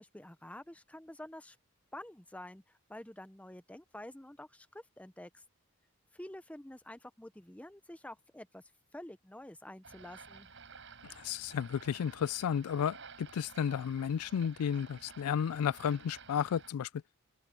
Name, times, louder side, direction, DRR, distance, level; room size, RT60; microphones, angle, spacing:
voice 1, 0.0-1.6 1.9-2.6 2.9-5.4 6.1-8.6 8.9-10.5, left 1 dB, 5° left, 0.6 m, -48 dB
sound 1, 9.8-16.7, right 5 dB, 55° right, 5.4 m, -53 dB
voice 2, 11.2-16.9, left 8 dB, 85° left, 0.3 m, -33 dB
open air
head